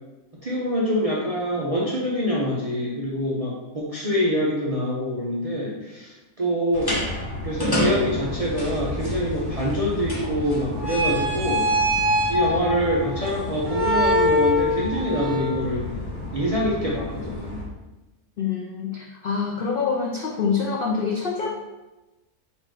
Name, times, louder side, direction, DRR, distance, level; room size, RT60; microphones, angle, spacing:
voice 1, 0.4-6.9 7.4-11.7 12.3-15.9 16.3-17.6, equal, 45° right, -6 dB, 0.4 m, -25 dB
sound 1, 6.7-17.6, left 1 dB, 20° left, 0.7 m, -25 dB
voice 2, 18.4-21.5, left 5 dB, 80° left, 0 dB, 0.5 m, -26 dB
4.2 x 2.6 x 4.5 m, 1.1 s
omnidirectional pair, 1.5 m